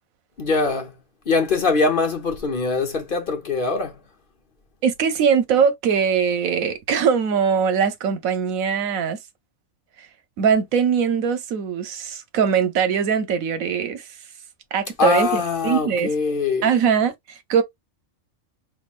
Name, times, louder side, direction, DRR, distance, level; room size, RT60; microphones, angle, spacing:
voice 1, 0.4-0.9 1.3-3.9 15.0-16.7, left 4 dB, 45° left, 1.1 m, -22 dB
voice 2, 4.8-9.2 10.4-14.1 14.7-16.1 16.6-17.6, right 7 dB, 85° right, 1.2 m, -21 dB
5.8 x 2.7 x 2.4 m
omnidirectional pair, 1.4 m